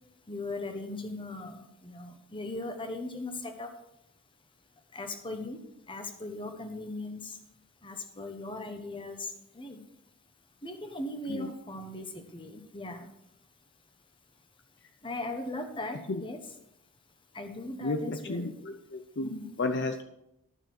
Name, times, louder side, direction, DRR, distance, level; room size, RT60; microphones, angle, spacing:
voice 1, 0.3-3.7 4.9-5.6 5.9-7.4 7.8-9.8 10.6-13.1 15.0-16.4 17.3-18.5 19.2-19.5, left 2 dB, 25° left, 6 dB, 1.2 m, -38 dB
voice 2, 17.8-20.0, left 2 dB, 55° left, 8 dB, 0.6 m, -33 dB
12.0 x 6.6 x 6.3 m, 0.84 s
head